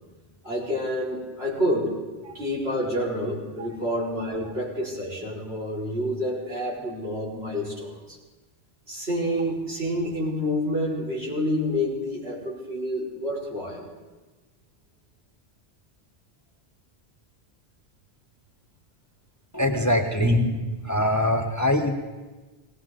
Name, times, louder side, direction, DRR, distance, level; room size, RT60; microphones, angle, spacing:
voice 1, 0.4-1.9 2.3-8.2 8.9-13.9 20.2-20.4, equal, 80° right, -6 dB, 4.5 m, -28 dB
voice 2, 19.5-20.3 20.8-21.9, left 1 dB, 20° left, 4 dB, 0.8 m, -23 dB
19.0 x 18.0 x 3.7 m, 1.2 s
omnidirectional pair, 1.0 m